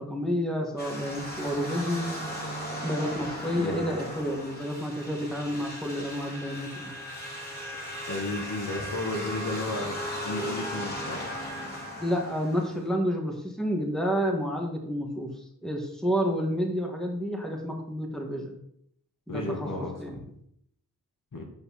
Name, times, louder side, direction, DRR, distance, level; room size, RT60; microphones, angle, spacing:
voice 1, 0.0-2.1 2.8-7.0 12.0-15.3 15.6-18.6 19.3-19.7 20.0-20.2, equal, ahead, 1 dB, 2.0 m, -30 dB
sound 1, 0.8-12.9, equal, 25° left, 3.2 m, -37 dB
voice 2, 8.1-10.0 10.2-11.3 19.3-20.2 21.3-21.4, left 2 dB, 55° left, 1 dB, 1.9 m, -33 dB
8.3 x 5.3 x 4.2 m, 0.72 s
cardioid pair, 45°, 38 cm